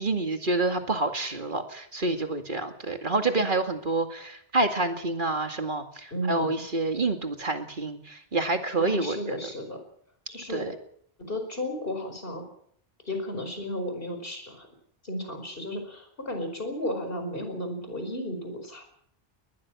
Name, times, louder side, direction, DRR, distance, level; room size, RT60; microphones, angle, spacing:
voice 1, 0.0-9.4 10.5-10.7, right 2 dB, 55° right, 6 dB, 2.4 m, -28 dB
voice 2, 6.1-6.6 8.7-9.8 10.3-10.7 11.3-12.4 13.0-14.7 15.0-18.8, left 1 dB, 65° left, 6 dB, 5.2 m, -34 dB
21.0 x 20.5 x 6.2 m, 0.65 s
omnidirectional pair, 1.0 m